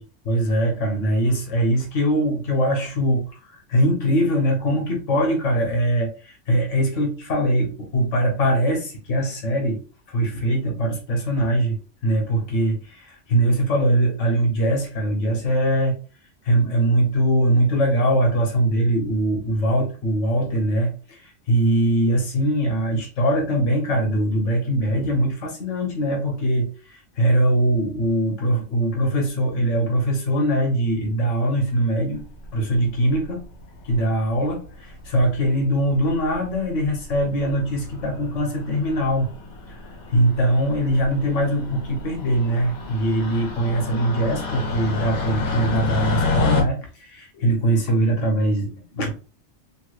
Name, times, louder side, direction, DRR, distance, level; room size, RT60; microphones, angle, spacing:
voice 1, 0.3-9.8 10.1-11.7 12.0-16.0 16.4-32.2 32.5-33.5 33.8-39.3 40.1-49.1, right 1 dB, 80° left, 1 dB, 1.2 m, -22 dB
sound 1, 32.4-32.9 33.9-34.3 35.2-35.3 35.4-35.5 35.8-35.9 36.2-36.6 37.0-37.2 37.5-46.6, left 3 dB, 55° left, 1.2 m, -28 dB
3.1 x 3.0 x 2.3 m, 0.35 s
omnidirectional pair, 1.3 m